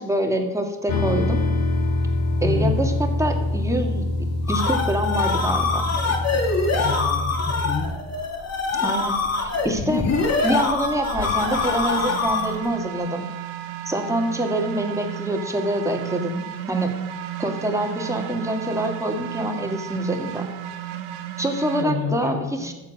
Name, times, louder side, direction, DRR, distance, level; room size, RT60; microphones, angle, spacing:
voice 1, 0.0-1.4 2.4-4.0 4.5-5.9 8.8-10.1 10.4-13.3 13.9-16.9 17.4-20.5 21.4-22.7, right 1 dB, 5° right, 3 dB, 1.8 m, -25 dB
sound 1, 0.9-7.9, left 2 dB, 75° left, 2.4 m, -25 dB
voice 2, 2.4-2.9 6.8-7.9 21.8-22.7, left 5 dB, 50° left, -7 dB, 4.2 m, -28 dB
sound 2, 4.2-12.7, left 4 dB, 35° left, 2.2 m, -24 dB
sound 3, 10.8-21.9, right 11 dB, 85° right, 1.2 m, -34 dB
14.0 x 7.2 x 6.5 m, 1.1 s
cardioid pair, 120°, 46 cm